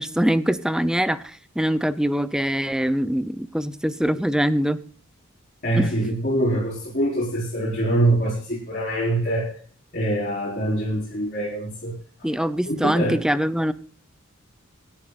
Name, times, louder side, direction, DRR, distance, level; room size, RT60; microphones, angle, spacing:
voice 1, 0.0-4.8 5.8-5.9 12.2-13.7, equal, 5° right, 14 dB, 0.5 m, -23 dB
voice 2, 5.6-9.5 9.9-11.9 12.6-13.2, right 1 dB, 45° left, -5 dB, 4.7 m, -24 dB
25.5 x 11.0 x 2.5 m, 0.43 s
head